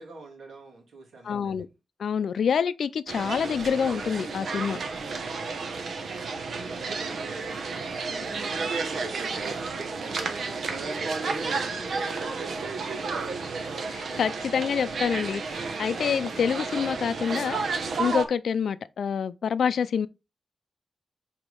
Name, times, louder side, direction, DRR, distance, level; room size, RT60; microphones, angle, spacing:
voice 1, 0.0-1.6 6.5-13.5, right 3 dB, 80° right, 2.4 m, -45 dB
voice 2, 1.3-1.7 2.0-4.8 13.9-20.1, left 7 dB, 75° left, 0.5 m, -27 dB
sound 1, 3.1-18.3, right 4 dB, 65° right, 1.0 m, -32 dB
5.0 x 4.6 x 5.4 m
wide cardioid pair, 150°, 0 cm